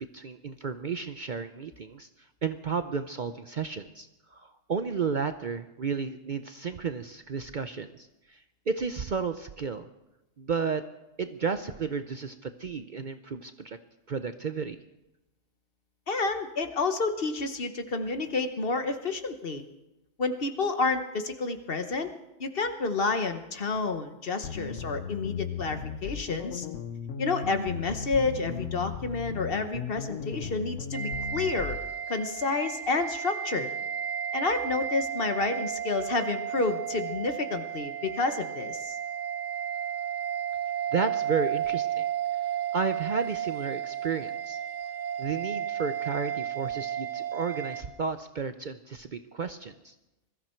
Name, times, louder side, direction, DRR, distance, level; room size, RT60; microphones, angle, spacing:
voice 1, 0.0-2.1 2.4-9.9 10.4-10.8 11.2-13.8 14.1-14.8 40.9-42.1 42.7-44.6 45.2-49.9, right 5 dB, 50° right, 9 dB, 0.7 m, -32 dB
voice 2, 16.1-19.6 20.2-22.1 22.4-26.7 27.2-31.8 32.1-33.7 34.3-39.0, left 3 dB, 50° left, 8 dB, 1.2 m, -30 dB
sound 1, 24.4-31.8, left 6 dB, 75° left, 1.2 m, -36 dB
sound 2, 30.9-47.8, right 9 dB, 75° right, 1.3 m, -33 dB
21.5 x 14.0 x 4.5 m, 0.95 s
omnidirectional pair, 1.3 m